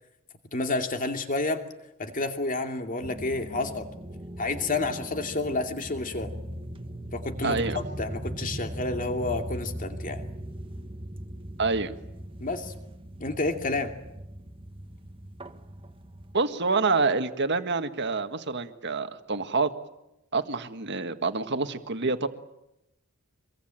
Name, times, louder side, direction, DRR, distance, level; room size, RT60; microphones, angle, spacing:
voice 1, 0.5-1.6 2.0-3.9 4.4-6.3 7.1-10.2 12.4-12.7 13.2-13.9, left 2 dB, 40° left, 5 dB, 2.6 m, -30 dB
sound 1, 3.0-16.3, right 1 dB, 25° right, 1.6 m, -39 dB
voice 2, 7.4-7.8 11.6-11.9 16.3-19.7 20.3-22.3, right 3 dB, 55° right, 9 dB, 1.7 m, -27 dB
25.0 x 23.0 x 9.0 m, 0.89 s
head